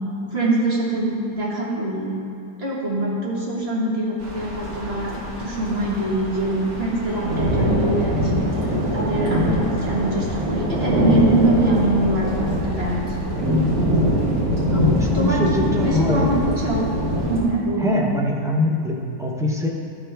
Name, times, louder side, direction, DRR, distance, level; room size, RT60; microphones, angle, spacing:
voice 1, 0.3-2.2 2.6-5.1 5.4-8.5 8.9-13.4 15.1-15.4 15.8-16.8 17.3-18.0, right 1 dB, 45° right, -6 dB, 1.8 m, -23 dB
sound 1, 4.2-17.4, equal, 85° right, 2.3 m, -23 dB
voice 2, 14.7-16.3 17.8-19.7, left 2 dB, 5° right, -2 dB, 0.3 m, -23 dB
12.5 x 5.7 x 3.4 m, 2.5 s
omnidirectional pair, 1.6 m